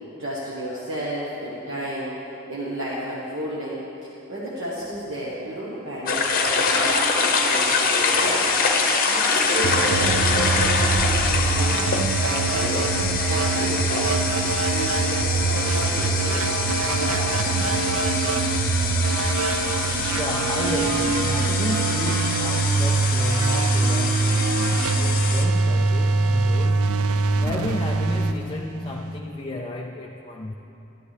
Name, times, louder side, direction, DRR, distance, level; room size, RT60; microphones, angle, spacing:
voice 1, 0.2-3.8 4.3-7.0 7.4-8.5 9.1-11.8 12.2-12.8 13.2-16.4 16.9-17.5, equal, 55° right, -7 dB, 1.3 m, -32 dB
sound 1, 6.1-25.4, left 4 dB, 40° left, 0.8 m, -24 dB
sound 2, 9.6-29.2, right 4 dB, 70° right, 0.4 m, -23 dB
voice 2, 20.1-27.0 27.4-30.5, left 2 dB, 20° left, 0 dB, 0.3 m, -32 dB
12.0 x 10.0 x 3.3 m, 2.9 s
head